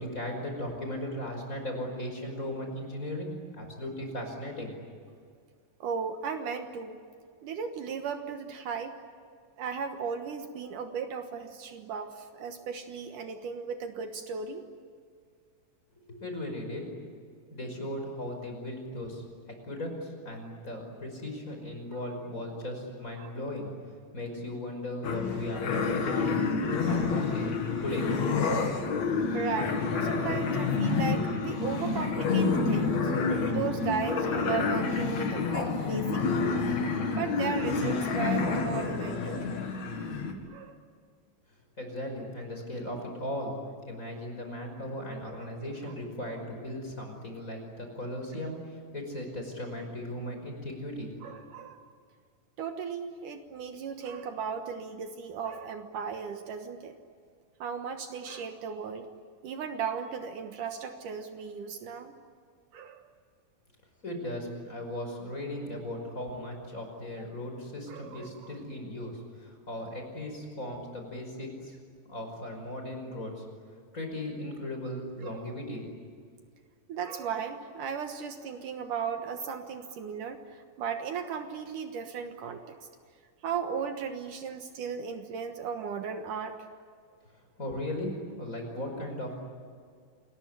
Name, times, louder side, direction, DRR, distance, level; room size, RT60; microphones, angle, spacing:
voice 1, 0.0-4.7 16.1-16.9 17.5-19.2 19.6-23.7 24.1-26.3 26.8-27.5 27.8-28.1 41.8-43.5 43.9-51.1 64.0-71.8 72.1-73.5 73.9-75.9 87.6-89.3, left 1 dB, 20° left, 3 dB, 5.6 m, -37 dB
voice 2, 5.8-7.0 7.4-8.9 9.6-14.7 23.2-23.3 26.8-27.0 29.3-39.4 40.5-40.8 45.3-45.7 51.2-51.9 52.6-56.9 57.6-59.1 59.4-62.1 62.7-63.0 67.9-68.5 75.2-75.5 76.9-82.9 83.4-86.6, right 6 dB, 70° right, 6 dB, 2.7 m, -36 dB
sound 1, 25.0-40.3, left 4 dB, 55° left, 3.4 m, -28 dB
28.0 x 21.0 x 9.8 m, 2.1 s
omnidirectional pair, 4.0 m